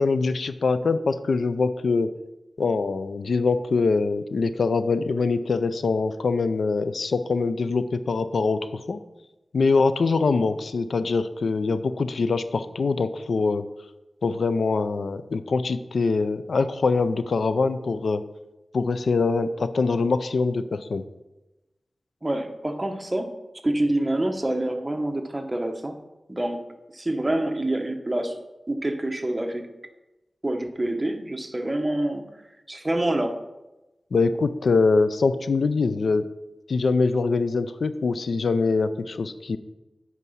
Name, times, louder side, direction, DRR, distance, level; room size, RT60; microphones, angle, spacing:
voice 1, 0.0-2.1 2.6-9.0 9.5-13.6 14.2-18.2 18.7-21.0 34.1-36.2 36.7-39.6, left 4 dB, 90° left, 12 dB, 0.4 m, -23 dB
voice 2, 22.2-23.3 23.6-26.0 26.3-26.6 26.9-28.4 28.7-29.7 30.4-32.2 32.7-33.4, right 1 dB, 25° right, 5 dB, 0.9 m, -26 dB
8.3 x 4.7 x 5.5 m, 1.0 s
wide cardioid pair, 75°, 0 cm